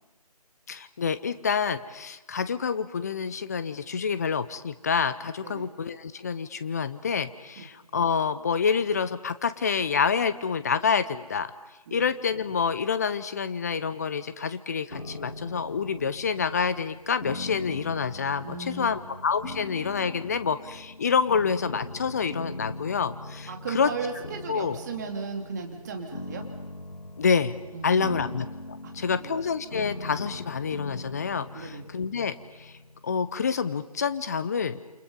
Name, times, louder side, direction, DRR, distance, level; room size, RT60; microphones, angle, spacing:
voice 1, 0.7-11.5 11.9-23.9 24.5-24.8 27.2-27.6 27.8-28.5 28.9-32.3 32.6-32.7 33.0-34.8, left 6 dB, 25° left, 13 dB, 0.8 m, -27 dB
sound 1, 14.9-33.9, left 1 dB, 90° left, 1.5 m, -41 dB
voice 2, 18.4-18.9 23.5-26.4 27.7-28.3 28.8-29.4 31.5-31.9, right 4 dB, 25° right, 2 dB, 2.7 m, -36 dB
29.0 x 28.0 x 5.5 m, 1.1 s
figure-of-eight pair, 155°, 20 cm